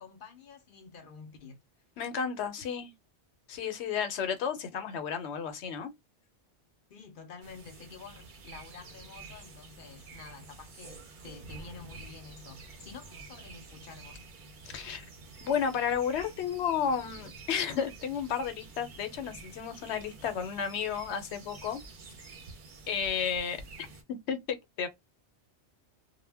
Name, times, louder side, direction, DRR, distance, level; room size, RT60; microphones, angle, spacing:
voice 1, 0.0-1.6 6.9-14.3, left 5 dB, 60° left, 0.7 m, -49 dB
voice 2, 2.0-2.9 3.5-5.9 14.6-15.1 15.4-21.8 22.9-23.6 24.1-24.9, left 7 dB, 80° left, 0.9 m, -32 dB
sound 1, 7.4-24.0, right 3 dB, 55° right, 0.7 m, -49 dB
2.1 x 2.0 x 3.3 m
omnidirectional pair, 1.1 m